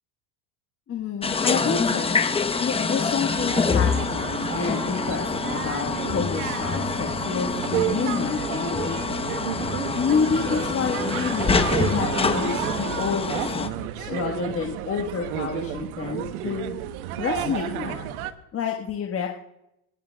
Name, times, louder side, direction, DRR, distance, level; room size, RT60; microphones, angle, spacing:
voice 1, 0.9-2.2 2.6-9.4 10.0-16.7 17.2-18.1 18.5-19.3, left 6 dB, 30° left, 1 dB, 1.4 m, -29 dB
sound 1, 1.2-13.7, left 4 dB, 15° left, 0.8 m, -26 dB
sound 2, 3.3-18.3, right 12 dB, 85° right, 1.1 m, -32 dB
Piano, 10.5-13.9, equal, 25° right, 3.6 m, -41 dB
27.0 x 9.9 x 2.3 m, 0.83 s
supercardioid pair, 110°, 43 cm